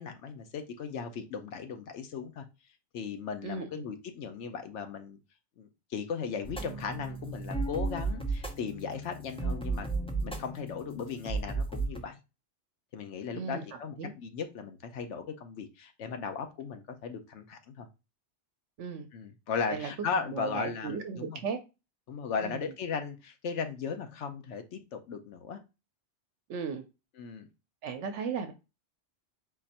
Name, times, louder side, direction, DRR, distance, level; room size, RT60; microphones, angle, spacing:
voice 1, 0.0-2.4 2.9-5.2 5.6-9.9 10.2-12.2 12.9-17.9 19.1-21.4 22.1-25.6 27.2-27.5, left 6 dB, 75° left, 6 dB, 1.1 m, -37 dB
voice 2, 3.4-3.8 13.3-13.6 14.0-14.1 18.8-19.1 19.7-19.9 20.2-21.6 22.4-22.7 26.5-26.9 27.8-28.5, right 5 dB, 75° right, 6 dB, 1.0 m, -36 dB
sound 1, 6.4-12.0, right 3 dB, 5° left, 0.4 m, -34 dB
4.3 x 2.6 x 4.1 m, 0.27 s
omnidirectional pair, 1.2 m